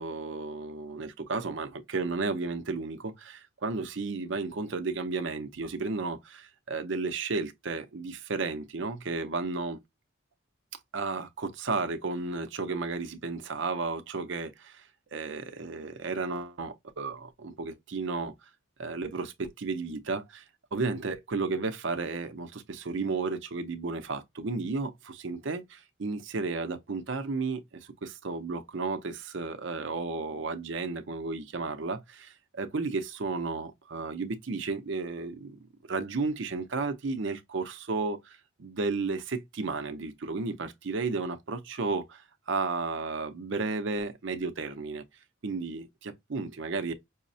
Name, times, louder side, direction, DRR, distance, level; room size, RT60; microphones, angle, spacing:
voice 1, 0.0-9.8 10.9-18.3 18.8-20.4 20.7-35.6 35.9-45.0 45.4-46.9, right 4 dB, 70° right, 0.6 m, -33 dB
5.5 x 2.0 x 2.6 m
head